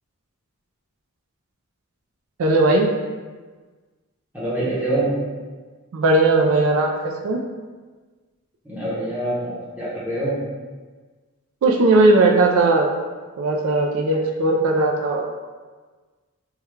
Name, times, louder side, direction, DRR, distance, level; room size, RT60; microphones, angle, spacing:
voice 1, 2.4-2.9 5.9-7.4 11.6-12.9 13.4-15.2, right 2 dB, 70° right, 1 dB, 0.3 m, -18 dB
voice 2, 4.3-5.1 8.6-10.4, right 1 dB, 5° right, -8 dB, 0.7 m, -25 dB
3.5 x 2.2 x 3.0 m, 1.4 s
head